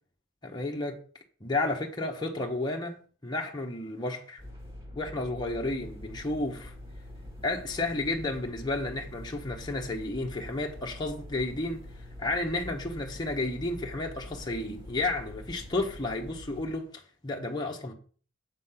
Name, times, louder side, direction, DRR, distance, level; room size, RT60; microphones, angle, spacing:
voice 1, 0.4-1.0 1.4-3.0 3.2-4.4 4.9-6.7 7.4-11.8 12.2-17.9, left 2 dB, 20° left, 1.1 m, -32 dB
sound 1, 4.4-16.8, left 1 dB, 25° right, 2.1 m, -45 dB
7.7 x 6.3 x 5.7 m
head